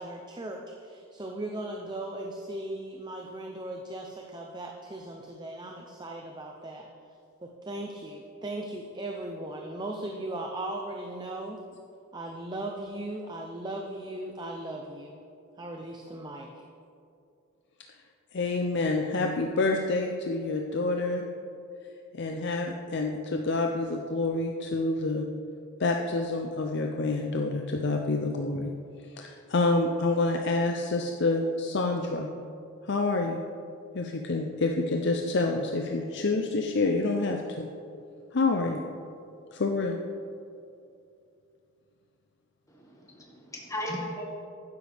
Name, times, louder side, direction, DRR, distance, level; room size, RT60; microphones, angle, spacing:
voice 1, 0.0-6.9 7.6-11.6 12.1-15.2 15.6-16.5, right 1 dB, 20° right, 1 dB, 0.6 m, -38 dB
voice 2, 18.3-21.2 22.1-25.3 25.8-28.7 29.1-32.3 32.9-33.4 33.9-37.7 38.3-38.8 39.5-40.0, left 3 dB, 55° left, 3 dB, 0.6 m, -27 dB
voice 3, 42.7-44.3, left 1 dB, 15° left, -2 dB, 1.8 m, -36 dB
11.5 x 9.9 x 3.5 m, 2.6 s
head